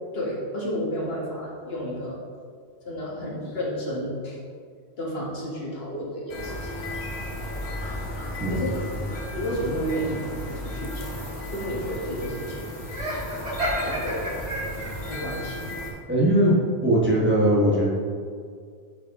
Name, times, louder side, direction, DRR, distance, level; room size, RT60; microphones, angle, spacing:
voice 1, 0.1-2.2 2.8-4.4 5.0-6.8 8.5-8.8 9.3-11.1 11.5-12.7 13.8-14.3 15.1-15.6, equal, 70° left, -4 dB, 1.6 m, -31 dB
sound 1, 6.3-15.9, left 1 dB, 85° left, 1.5 m, -34 dB
Laughter, 12.9-15.2, equal, 65° right, 2.0 m, -30 dB
voice 2, 16.1-16.6 16.8-17.9, right 1 dB, 10° right, -6 dB, 1.2 m, -20 dB
7.7 x 5.5 x 3.5 m, 2.1 s
omnidirectional pair, 1.1 m